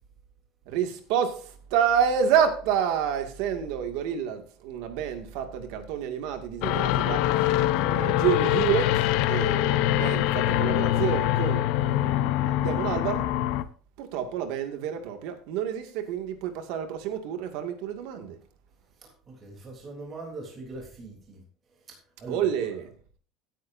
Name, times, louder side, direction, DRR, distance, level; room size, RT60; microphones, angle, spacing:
voice 1, 0.7-7.3 7.9-13.3 14.0-18.4 22.3-22.9, right 8 dB, 70° right, 2.2 m, -29 dB
sound 1, 6.6-13.6, left 13 dB, 65° left, 0.8 m, -24 dB
voice 2, 19.0-21.4 21.7-22.9, right 2 dB, 25° right, 3.5 m, -42 dB
16.5 x 9.5 x 2.7 m
cardioid pair, 165°, 0 cm